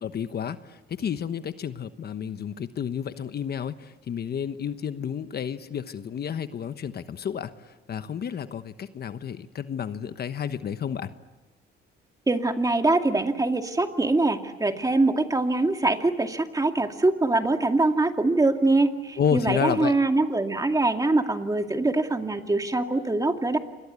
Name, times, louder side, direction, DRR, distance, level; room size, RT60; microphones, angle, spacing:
voice 1, 0.0-11.1 19.2-19.9, left 8 dB, 55° left, 11 dB, 1.2 m, -31 dB
voice 2, 12.3-23.6, right 2 dB, 15° right, 5 dB, 2.3 m, -23 dB
28.0 x 22.0 x 8.3 m, 1.1 s
cardioid pair, 90°, 20 cm